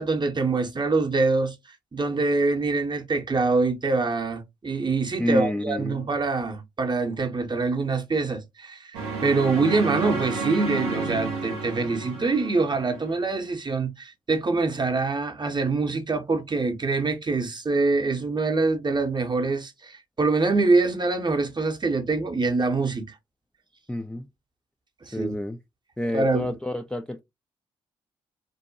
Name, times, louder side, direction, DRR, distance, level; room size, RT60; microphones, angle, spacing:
voice 1, 0.0-1.6 1.9-23.0 25.0-25.3 26.1-26.5, right 3 dB, 30° right, 0.7 m, -25 dB
voice 2, 5.2-6.0 23.9-24.3 25.1-25.6 26.0-27.2, left 1 dB, 5° left, 0.3 m, -28 dB
sound 1, 8.9-13.1, right 4 dB, 75° right, 0.7 m, -31 dB
2.6 x 2.1 x 2.6 m
hypercardioid pair, 40°, 15 cm